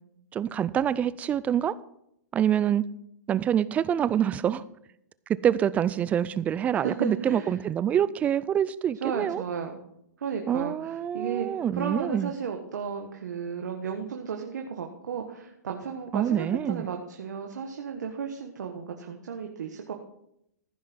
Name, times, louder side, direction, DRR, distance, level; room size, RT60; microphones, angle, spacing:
voice 1, 0.3-1.8 2.3-2.9 3.3-4.6 5.3-9.4 10.5-12.3 16.1-16.9, right 9 dB, 15° right, 18 dB, 0.3 m, -26 dB
voice 2, 6.8-7.5 9.0-9.8 10.2-11.5 11.7-19.9, right 6 dB, 75° right, 3 dB, 1.4 m, -34 dB
15.0 x 5.7 x 6.1 m, 0.76 s
hypercardioid pair, 140°, 10 cm